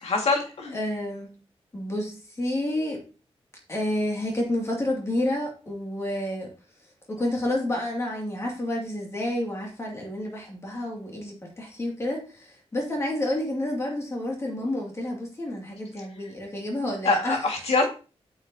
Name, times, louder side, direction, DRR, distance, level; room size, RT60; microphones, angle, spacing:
voice 1, 0.0-0.8 17.0-17.9, left 3 dB, 75° left, 1 dB, 2.0 m, -24 dB
voice 2, 0.7-1.3 1.7-3.0 3.7-6.5 7.1-17.4, left 1 dB, 25° left, -1 dB, 2.4 m, -29 dB
8.4 x 6.5 x 2.8 m, 0.35 s
wide cardioid pair, 175°, 11 cm